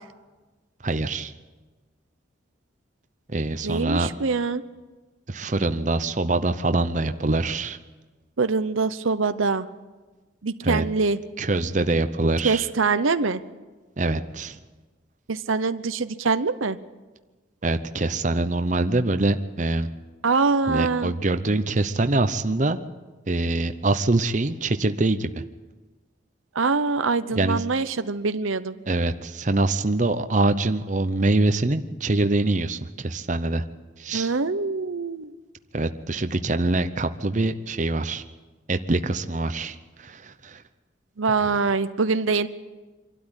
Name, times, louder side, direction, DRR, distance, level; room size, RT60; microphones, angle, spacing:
voice 1, 0.8-1.3 3.3-4.1 5.3-7.8 10.6-10.8 11.4-12.7 14.0-14.6 17.6-19.9 20.7-22.8 23.3-25.4 27.3-27.6 28.9-33.6 34.0-34.3 35.7-38.2 38.7-40.6, right 2 dB, 40° right, 9 dB, 0.8 m, -24 dB
voice 2, 3.6-4.6 8.4-9.7 10.4-11.2 12.4-13.4 15.3-16.8 20.2-21.1 26.5-28.8 34.1-35.3 41.2-42.5, right 4 dB, 90° right, 12 dB, 0.8 m, -24 dB
25.5 x 12.5 x 9.9 m, 1.3 s
head